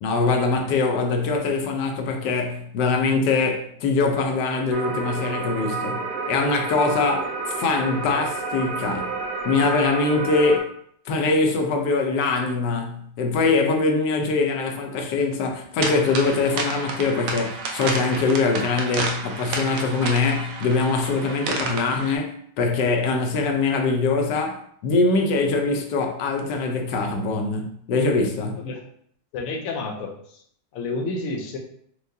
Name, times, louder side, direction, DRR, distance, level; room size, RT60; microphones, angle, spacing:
voice 1, 0.0-9.1 9.4-10.7 11.1-24.6 24.8-28.6, left 3 dB, 85° left, 3 dB, 1.3 m, -23 dB
sound 1, 4.7-10.6, right 4 dB, 90° right, 1.3 m, -30 dB
sound 2, 15.8-22.2, right 3 dB, 65° right, 0.8 m, -30 dB
voice 2, 29.3-30.4 30.7-31.6, left 3 dB, 65° left, 2 dB, 0.9 m, -30 dB
4.5 x 2.1 x 2.7 m, 0.66 s
omnidirectional pair, 1.8 m